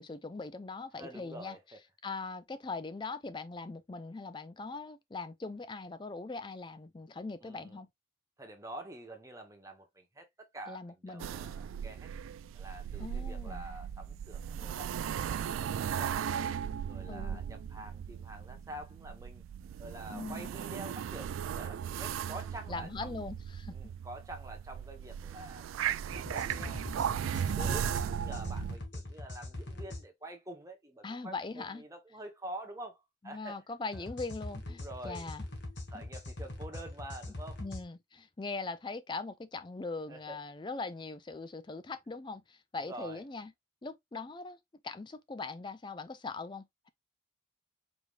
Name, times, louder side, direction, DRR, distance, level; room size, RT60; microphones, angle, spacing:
voice 1, 0.0-1.6 2.0-7.9 10.7-11.3 13.0-13.7 17.1-17.4 20.1-20.5 22.7-23.8 27.6-27.9 31.0-31.8 33.2-35.5 35.9-36.0 37.6-43.5 43.8-44.6 44.8-46.9, left 3 dB, 25° left, 0.4 m, -41 dB
voice 2, 0.9-1.8 7.4-7.8 8.4-12.1 12.5-16.5 16.9-19.4 19.8-23.2 23.7-25.6 26.1-26.8 27.2-33.6 33.9-34.1 34.7-35.3 35.9-37.6 40.1-40.4 42.8-43.2, right 1 dB, 15° right, 1.0 m, -47 dB
sound 1, 11.2-28.8, right 8 dB, 90° right, 0.3 m, -37 dB
sound 2, 26.1-30.0 33.9-37.8, left 1 dB, 65° left, 1.4 m, -42 dB
4.8 x 3.5 x 2.4 m
head